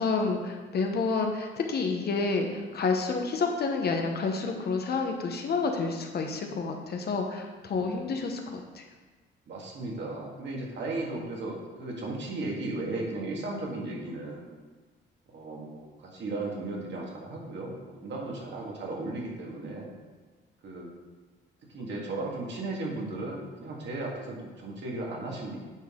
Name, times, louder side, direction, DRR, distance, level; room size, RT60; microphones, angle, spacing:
voice 1, 0.0-8.8, left 4 dB, 55° left, 3 dB, 1.0 m, -29 dB
voice 2, 9.5-14.6 15.3-19.9 20.6-20.9 21.7-25.6, right 2 dB, 60° right, -2 dB, 1.9 m, -36 dB
9.1 x 4.1 x 3.7 m, 1.3 s
cardioid pair, 90°, 20 cm